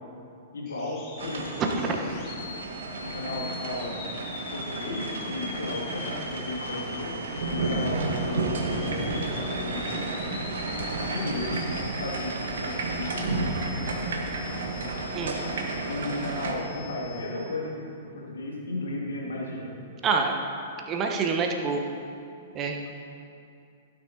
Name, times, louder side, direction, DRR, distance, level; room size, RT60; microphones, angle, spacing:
voice 1, 0.5-1.6 2.0-2.2 3.0-4.0 4.5-7.2 7.5-10.0 11.1-11.6 12.0-13.5 15.9-17.9 18.1-19.7, left 2 dB, 70° left, -3 dB, 2.4 m, -34 dB
sound 1, 0.7-17.4, left 4 dB, 30° left, 1.9 m, -42 dB
sound 2, 1.2-16.5, right 3 dB, 60° right, 1.4 m, -32 dB
voice 2, 20.0-20.3 20.9-21.8 22.5-23.0, right 5 dB, 25° right, 2 dB, 1.2 m, -26 dB
16.0 x 9.4 x 2.9 m, 2.5 s
figure-of-eight pair, 105°, 0 cm